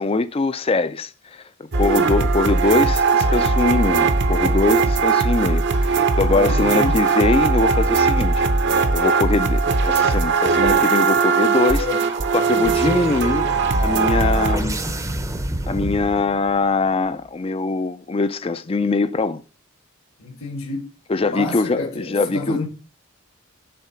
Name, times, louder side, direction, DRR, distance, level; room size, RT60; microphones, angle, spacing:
voice 1, 0.0-1.4 1.7-8.4 8.9-11.8 12.3-13.5 13.8-14.8 15.7-19.4 21.1-22.6, left 3 dB, 25° left, 0.4 m, -22 dB
sound 1, 1.7-14.6, right 4 dB, 50° right, 0.7 m, -19 dB
voice 2, 6.3-7.0 11.8-12.1 20.2-20.9 21.3-22.7, left 3 dB, 70° left, 1.7 m, -29 dB
sound 2, 11.6-16.6, right 1 dB, 15° right, 0.6 m, -29 dB
7.0 x 3.7 x 5.7 m
head